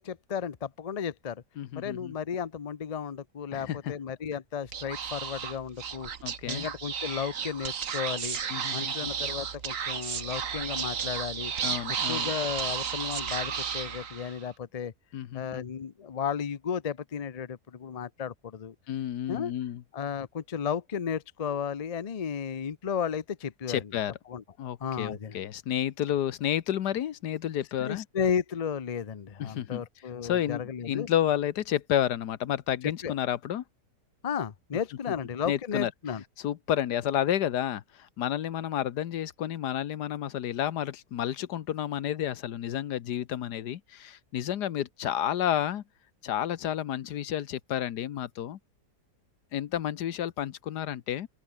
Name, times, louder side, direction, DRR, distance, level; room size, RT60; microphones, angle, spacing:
voice 1, 0.0-1.4 1.7-6.1 6.5-8.4 8.7-11.5 12.1-14.9 15.3-18.7 19.3-19.5 19.9-23.9 24.3-24.4 24.8-25.4 27.8-31.1 33.0-33.1 34.2-36.2, left 7 dB, 45° left, 0.5 m, -34 dB
voice 2, 1.6-2.1 3.5-3.9 6.2-6.7 8.5-9.1 11.6-12.3 15.1-15.6 18.9-19.8 23.7-24.1 24.6-28.0 29.4-29.8 30.2-33.6 35.5-35.9 36.4-45.8 46.2-48.6 49.5-51.3, left 11 dB, 80° left, 1.5 m, -31 dB
Speech / Whispering, 4.7-14.5, right 7 dB, 55° right, 1.7 m, -33 dB
open air
omnidirectional pair, 1.7 m